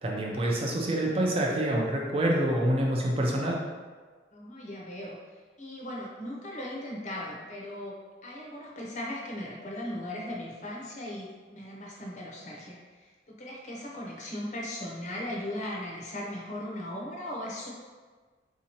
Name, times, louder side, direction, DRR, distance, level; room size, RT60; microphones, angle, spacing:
voice 1, 0.0-3.6, right 1 dB, 30° right, -2 dB, 0.4 m, -27 dB
voice 2, 4.3-8.0 8.2-17.7, left 1 dB, 40° left, -3 dB, 0.6 m, -38 dB
3.7 x 2.8 x 2.8 m, 1.4 s
head